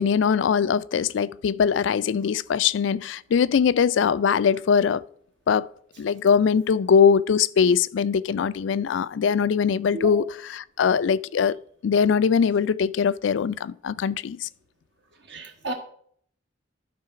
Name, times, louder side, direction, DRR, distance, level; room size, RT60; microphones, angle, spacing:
voice 1, 0.0-5.0 5.5-5.7 6.0-10.2 10.8-11.6 11.8-14.5, left 6 dB, 75° left, 0.4 m, -21 dB
voice 2, 15.2-15.7, right 2 dB, 65° right, 1.3 m, -33 dB
12.0 x 4.1 x 5.7 m
head